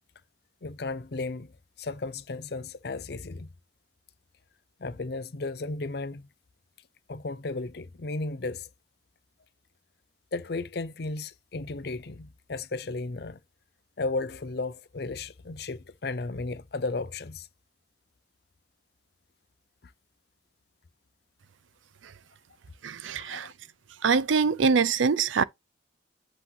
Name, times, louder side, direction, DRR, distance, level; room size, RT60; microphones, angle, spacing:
voice 1, 0.6-1.5 1.8-3.5 4.8-6.3 7.1-8.7 10.3-13.4 14.0-17.5 19.8-19.9 23.2-23.5, left 3 dB, 55° left, 0.6 m, -34 dB
voice 2, 22.8-23.5 24.0-25.4, right 5 dB, 85° right, 0.6 m, -24 dB
8.2 x 2.8 x 5.7 m
head